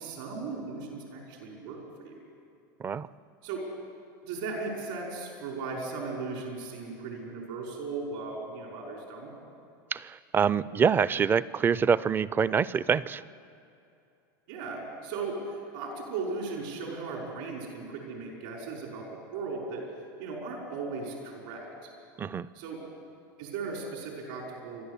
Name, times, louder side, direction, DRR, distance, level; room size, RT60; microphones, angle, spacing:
voice 1, 0.0-2.2 3.4-3.7 4.2-9.3 14.5-19.9 20.2-21.7 22.5-22.8 23.4-24.9, right 4 dB, 75° right, -1 dB, 5.3 m, -37 dB
voice 2, 9.9-13.2 22.2-22.5, right 6 dB, 20° right, 19 dB, 0.4 m, -26 dB
27.5 x 11.5 x 8.3 m, 2.7 s
supercardioid pair, 130°, 10 cm